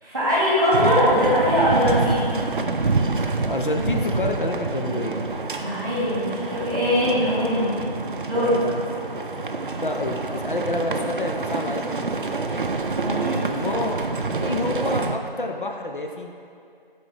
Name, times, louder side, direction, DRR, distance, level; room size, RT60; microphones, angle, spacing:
voice 1, 0.0-2.3 5.6-7.7 8.3-8.5 13.0-13.4, equal, 20° right, -9 dB, 1.5 m, -21 dB
sound 1, 0.7-15.2, right 3 dB, 60° right, 0.5 m, -27 dB
voice 2, 3.4-5.2 8.3-8.8 9.8-12.0 12.3-12.5 13.5-14.0 14.4-16.3, left 2 dB, 60° left, 2 dB, 0.6 m, -28 dB
9.5 x 4.2 x 3.2 m, 2.4 s
figure-of-eight pair, 170°, 29 cm